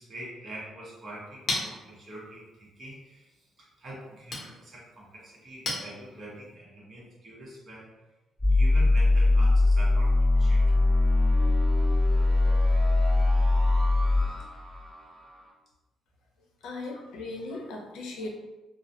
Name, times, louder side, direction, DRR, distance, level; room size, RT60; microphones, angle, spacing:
voice 1, 0.0-3.3 3.6-7.9 8.5-10.7, right 1 dB, 45° right, -4 dB, 1.0 m, -44 dB
Chink clink, 0.8-6.6, left 2 dB, 50° left, 0.7 m, -39 dB
sound 1, 8.4-15.4, left 2 dB, 5° left, 1.0 m, -22 dB
voice 2, 16.6-18.3, left 2 dB, 90° left, 0 dB, 0.5 m, -37 dB
2.3 x 2.1 x 2.7 m, 1.1 s
cardioid pair, 90°, 0 cm